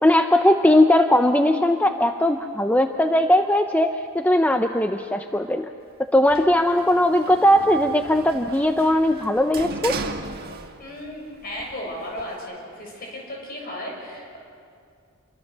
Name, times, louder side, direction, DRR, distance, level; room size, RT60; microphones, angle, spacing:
voice 1, 0.0-5.7 6.1-10.0, left 1 dB, 5° left, 6 dB, 0.6 m, -19 dB
Sliding door, 6.3-11.1 11.4-12.4, right 3 dB, 45° right, 1.4 m, -36 dB
voice 2, 10.8-14.4, left 1 dB, 45° left, -1 dB, 6.8 m, -35 dB
27.0 x 23.0 x 6.7 m, 2.3 s
head